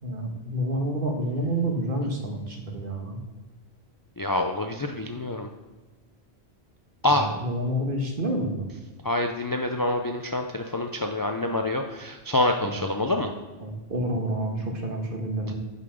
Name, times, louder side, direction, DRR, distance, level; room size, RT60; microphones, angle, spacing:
voice 1, 0.0-3.2 7.1-8.6 12.6-13.2 13.6-15.5, right 1 dB, 55° right, 2 dB, 1.5 m, -29 dB
voice 2, 4.2-5.5 7.0-7.3 9.0-13.3 15.5-15.6, left 2 dB, 30° left, 4 dB, 0.4 m, -26 dB
8.0 x 5.7 x 5.1 m, 1.2 s
omnidirectional pair, 1.1 m